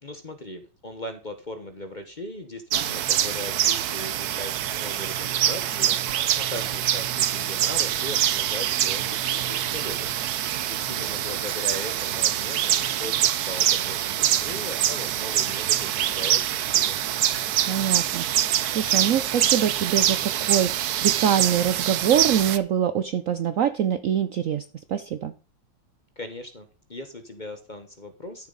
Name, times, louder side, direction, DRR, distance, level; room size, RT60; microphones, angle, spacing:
voice 1, 0.0-17.0 26.2-28.5, left 1 dB, 30° left, 8 dB, 0.9 m, -39 dB
sound 1, 2.7-22.6, right 11 dB, 65° right, 1.0 m, -25 dB
voice 2, 17.7-18.2 18.7-25.3, right 9 dB, 90° right, 12 dB, 0.7 m, -24 dB
13.0 x 7.1 x 4.0 m, 0.36 s
omnidirectional pair, 2.2 m